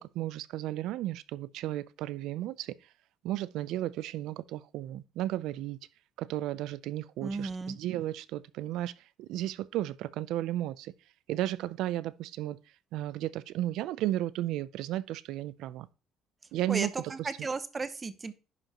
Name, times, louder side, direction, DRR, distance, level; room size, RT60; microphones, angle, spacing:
voice 1, 0.0-2.7 3.2-5.8 6.2-8.9 9.2-10.9 11.3-12.6 12.9-15.9 16.5-17.3, right 14 dB, 75° right, 0.4 m, -34 dB
voice 2, 7.2-7.8 16.7-18.3, right 4 dB, 25° right, 0.7 m, -34 dB
11.0 x 5.1 x 2.9 m
cardioid pair, 130°, 0 cm